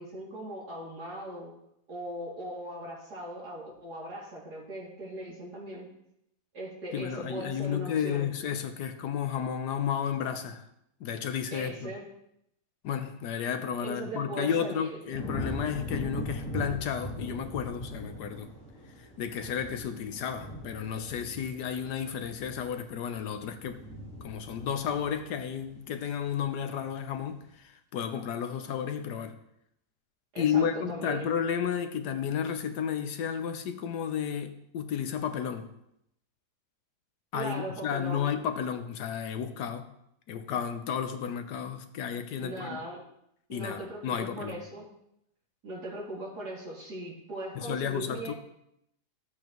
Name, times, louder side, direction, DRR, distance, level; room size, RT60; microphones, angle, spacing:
voice 1, 0.0-1.5 1.9-5.9 6.5-8.3 11.5-12.1 13.8-15.0 30.3-31.3 37.3-38.4 42.4-43.0 43.5-44.9 45.6-48.3, right 1 dB, 80° right, 3.3 m, -39 dB
voice 2, 6.9-10.6 11.0-11.9 12.8-18.5 19.2-23.8 24.2-27.4 27.9-29.4 30.4-35.7 37.3-39.9 40.3-42.8 43.5-44.6 47.5-48.3, left 8 dB, 80° left, 1.4 m, -32 dB
sound 1, 15.1-26.4 26.8-27.3, equal, 5° left, 2.7 m, -41 dB
13.5 x 8.2 x 3.0 m
omnidirectional pair, 1.7 m